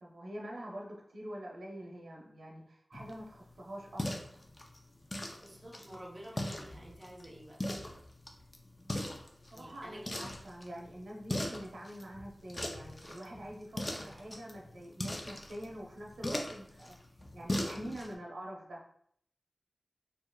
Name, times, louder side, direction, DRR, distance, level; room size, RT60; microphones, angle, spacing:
voice 1, 0.0-4.3 9.5-17.0 17.3-18.8, equal, 85° right, -2 dB, 0.9 m, -45 dB
sound 1, 2.9-18.1, left 1 dB, 25° left, 0.6 m, -41 dB
voice 2, 5.1-7.6 9.5-10.1, right 1 dB, 25° right, -4 dB, 0.9 m, -50 dB
4.6 x 2.9 x 2.3 m, 0.66 s
wide cardioid pair, 90°, 0 cm